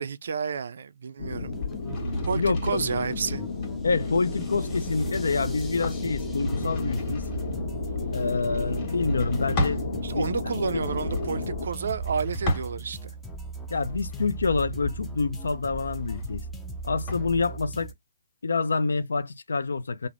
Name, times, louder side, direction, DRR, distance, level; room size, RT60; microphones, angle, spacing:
voice 1, 0.0-1.6 2.3-3.4 10.0-13.1, right 5 dB, 65° right, 0.3 m, -30 dB
sound 1, 1.2-11.7, left 4 dB, 50° left, 0.9 m, -33 dB
sound 2, 1.3-17.9, right 3 dB, 5° left, 0.4 m, -39 dB
sound 3, 1.6-9.9 10.7-13.1 13.6-17.3, equal, 30° left, 1.2 m, -34 dB
voice 2, 2.3-3.1 3.8-7.2 8.1-9.8 10.1-10.3 13.7-16.5 16.8-17.9 18.4-20.1, left 4 dB, 85° left, 0.4 m, -27 dB
3.2 x 2.0 x 2.4 m
hypercardioid pair, 155°, 0 cm